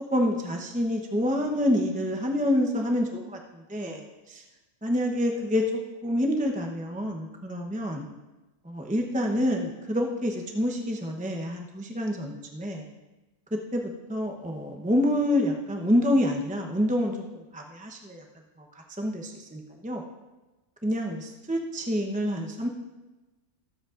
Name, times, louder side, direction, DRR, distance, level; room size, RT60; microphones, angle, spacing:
voice 1, 0.1-4.4 4.8-5.6 6.0-8.0 8.6-12.9 13.5-18.2 18.6-20.0 20.8-22.7, equal, 5° right, 1 dB, 0.7 m, -27 dB
21.0 x 8.0 x 2.5 m, 1.1 s
omnidirectional pair, 1.5 m